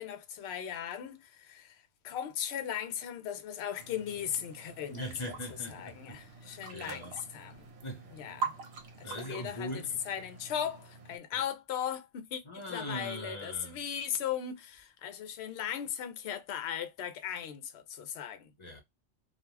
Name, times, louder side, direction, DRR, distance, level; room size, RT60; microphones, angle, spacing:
voice 1, 0.0-5.3 5.7-7.7 8.1-8.5 9.0-9.7 10.1-18.5, left 9 dB, 70° left, 0.8 m, -38 dB
sound 1, 3.8-11.2, right 5 dB, 70° right, 0.9 m, -44 dB
voice 2, 4.9-7.2 7.8-8.1 9.0-10.0 11.3-11.4 12.4-13.8 18.6-18.8, equal, 30° left, 1.0 m, -41 dB
2.3 x 2.3 x 3.1 m
omnidirectional pair, 1.2 m